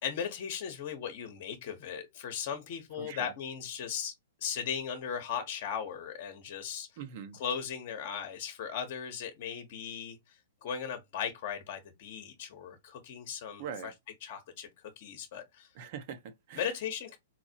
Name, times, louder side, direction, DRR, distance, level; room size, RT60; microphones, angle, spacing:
voice 1, 0.0-4.1 4.4-6.9 7.3-13.9 14.2-14.7 15.0-15.7 16.5-17.2, left 7 dB, 55° left, 0.8 m, -37 dB
voice 2, 3.0-3.3 7.0-7.4 13.6-13.9 15.7-16.7, right 7 dB, 50° right, 0.8 m, -42 dB
4.3 x 2.0 x 2.6 m
hypercardioid pair, 120°, 0 cm